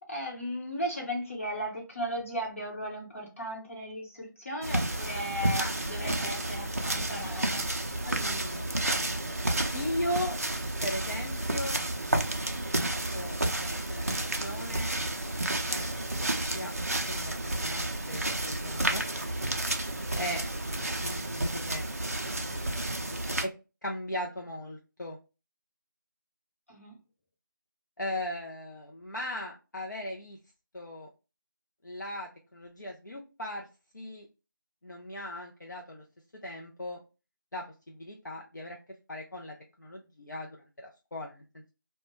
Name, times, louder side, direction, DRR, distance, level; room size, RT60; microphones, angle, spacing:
voice 1, 0.1-7.7 20.7-20.8 26.7-26.9, equal, 40° left, -2 dB, 0.9 m, -36 dB
sound 1, 4.6-23.4, right 1 dB, 45° right, 0.3 m, -31 dB
voice 2, 6.0-7.2 8.0-9.4 9.7-10.4 10.8-11.8 12.9-14.9 15.7-19.0 20.1-20.4 21.0-21.8 22.3-23.5 23.8-25.2 28.0-30.4 30.7-31.1 31.8-33.7 33.9-34.3 34.8-36.0 36.4-37.0 37.5-38.8 39.1-41.7, left 1 dB, 60° left, 0 dB, 0.5 m, -38 dB
2.1 x 2.1 x 2.9 m, 0.30 s
figure-of-eight pair, 165°, 11 cm